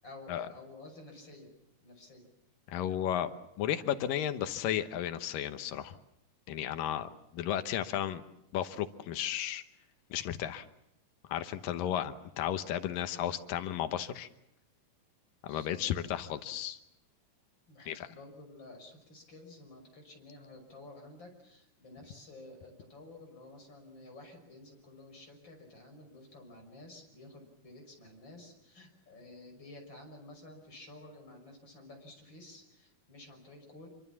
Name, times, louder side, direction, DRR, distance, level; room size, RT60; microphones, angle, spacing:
voice 1, 0.0-1.5 1.8-2.3 15.5-15.8 16.2-16.3 17.7-33.9, left 2 dB, 30° left, 3 dB, 6.5 m, -52 dB
voice 2, 2.7-3.3 3.6-6.0 6.5-8.2 8.5-9.6 10.1-10.7 11.3-14.3 15.4-16.8 17.9-18.1, left 11 dB, 90° left, 10 dB, 2.8 m, -34 dB
27.0 x 24.5 x 7.2 m, 0.80 s
omnidirectional pair, 3.8 m